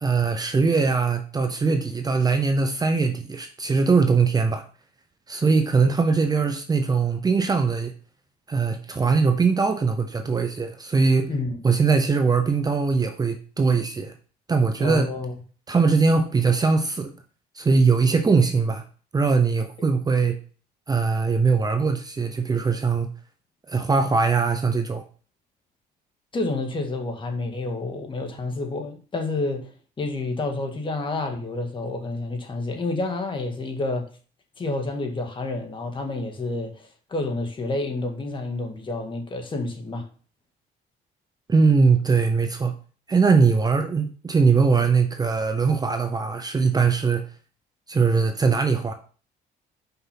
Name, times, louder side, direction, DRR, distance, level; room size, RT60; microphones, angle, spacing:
voice 1, 0.0-4.6 5.3-7.9 8.5-11.3 11.6-14.1 14.5-15.1 15.7-17.1 17.5-18.8 19.1-20.4 20.9-23.1 23.7-25.0 41.5-42.7 43.1-47.2 47.9-48.9, right 4 dB, 25° right, 0.8 m, -21 dB
voice 2, 11.3-11.6 14.8-15.3 26.3-29.7 30.0-34.1 34.6-40.1, left 2 dB, 30° left, 1.9 m, -29 dB
5.8 x 5.5 x 5.7 m
cardioid pair, 110°, 17 cm